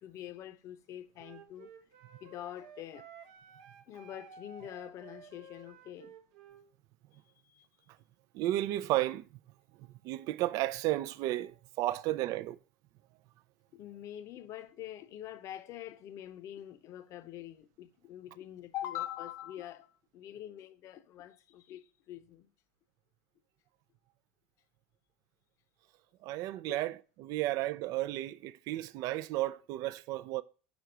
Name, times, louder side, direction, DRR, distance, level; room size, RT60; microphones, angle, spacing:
voice 1, 0.0-1.7 2.2-3.1 3.9-6.1 7.4-7.7 13.7-22.5 26.7-26.8, left 12 dB, 50° left, 0.8 m, -44 dB
Wind instrument woodwind instrument, 1.2-6.7, right 5 dB, 75° right, 1.0 m, -54 dB
voice 2, 8.3-9.2 10.0-12.6 26.2-30.4, right 15 dB, 60° right, 0.4 m, -33 dB
6.2 x 4.6 x 6.5 m
supercardioid pair, 115°, 7 cm